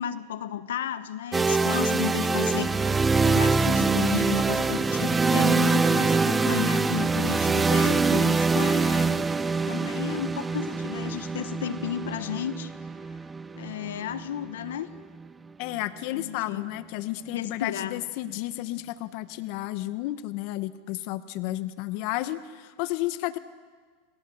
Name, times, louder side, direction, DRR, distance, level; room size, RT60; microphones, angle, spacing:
voice 1, 0.0-3.0 3.3-9.3 9.7-12.7 13.6-14.9 16.1-16.7 17.3-18.0, left 10 dB, 85° left, 13 dB, 1.1 m, -33 dB
sound 1, 1.3-15.2, right 4 dB, 15° right, 0.8 m, -24 dB
voice 2, 15.6-23.4, left 16 dB, 60° left, 13 dB, 1.1 m, -32 dB
29.0 x 20.0 x 7.0 m, 1.5 s
supercardioid pair, 120°, 0 cm